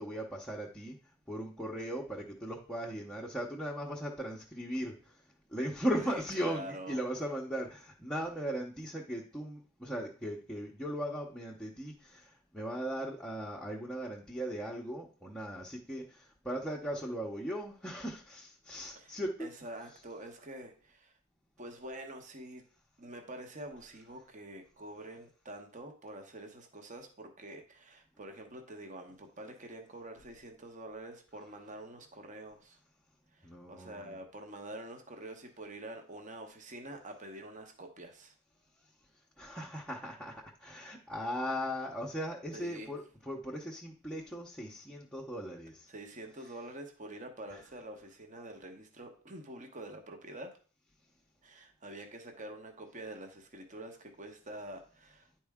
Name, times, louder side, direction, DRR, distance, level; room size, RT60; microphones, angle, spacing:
voice 1, 0.0-19.5 33.4-34.2 38.8-45.9, equal, 5° left, -4 dB, 0.8 m, -38 dB
voice 2, 6.0-7.0 18.9-19.1 19.4-21.1 21.6-22.6 23.0-32.8 33.3-38.3 42.5-42.9 45.9-50.5 51.4-55.3, right 1 dB, 35° right, 5 dB, 1.0 m, -46 dB
10.0 x 4.4 x 3.6 m, 0.41 s
head